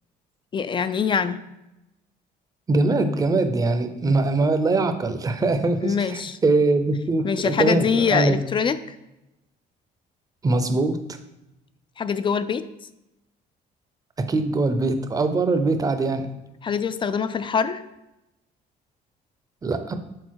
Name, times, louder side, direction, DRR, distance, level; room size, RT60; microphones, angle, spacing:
voice 1, 0.5-1.4 5.8-6.4 7.2-8.8 12.0-12.7 16.6-17.8, left 6 dB, 30° left, 13 dB, 0.3 m, -24 dB
voice 2, 2.7-8.4 10.4-11.0 14.2-16.3 19.6-19.9, right 3 dB, 20° right, 8 dB, 0.6 m, -22 dB
6.4 x 3.9 x 4.7 m, 0.92 s
cardioid pair, 110°, 17 cm